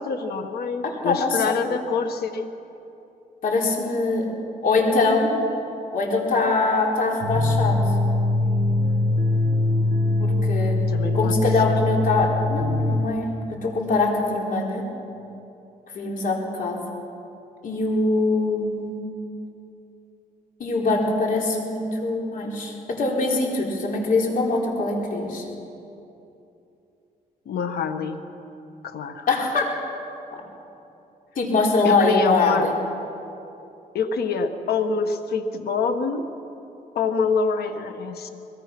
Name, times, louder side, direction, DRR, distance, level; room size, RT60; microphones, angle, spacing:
voice 1, 0.0-2.5 10.9-11.3 27.4-28.2 28.8-29.3 31.8-32.7 33.9-36.2 36.9-38.3, left 5 dB, 85° left, 7 dB, 1.5 m, -26 dB
voice 2, 0.8-1.5 3.4-4.3 4.6-5.3 5.9-7.8 10.2-10.8 11.1-13.3 13.6-14.8 15.9-16.8 17.6-19.0 20.6-25.4 29.3-29.7 30.3-30.4 31.4-32.7, left 3 dB, 60° left, -1 dB, 4.2 m, -23 dB
sound 1, 7.2-13.0, left 2 dB, 55° right, 1.9 m, -22 dB
22.5 x 21.0 x 6.1 m, 2.8 s
cardioid pair, 125°, 16 cm